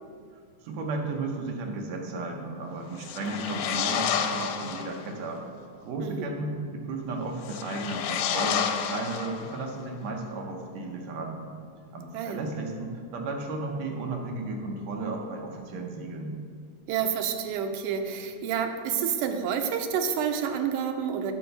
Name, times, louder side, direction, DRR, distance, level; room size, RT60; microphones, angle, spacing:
voice 1, 0.6-5.4 5.8-11.5 11.9-16.3, right 3 dB, 70° right, 2 dB, 1.8 m, -34 dB
sound 1, 3.0-5.0 7.4-9.7, left 8 dB, 90° left, 2.1 m, -30 dB
voice 2, 6.0-6.3 12.1-12.4 16.9-21.3, right 7 dB, 85° right, 6 dB, 2.1 m, -29 dB
8.7 x 3.8 x 6.7 m, 2.2 s
omnidirectional pair, 3.6 m